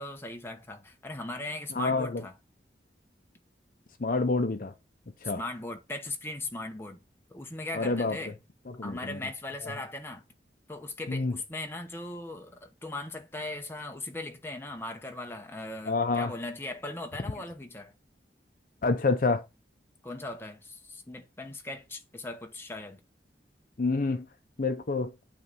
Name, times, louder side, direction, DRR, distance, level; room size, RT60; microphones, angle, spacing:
voice 1, 0.0-2.3 5.3-7.0 7.3-8.4 8.8-10.2 10.7-17.9 20.0-23.0, left 2 dB, 15° left, 0.9 m, -39 dB
voice 2, 1.8-2.2 4.0-4.7 5.2-5.4 7.7-8.2 8.8-9.2 11.1-11.3 15.9-16.3 18.8-19.4 23.8-24.2 24.6-25.1, left 3 dB, 50° left, 0.6 m, -27 dB
8.4 x 3.2 x 5.3 m
head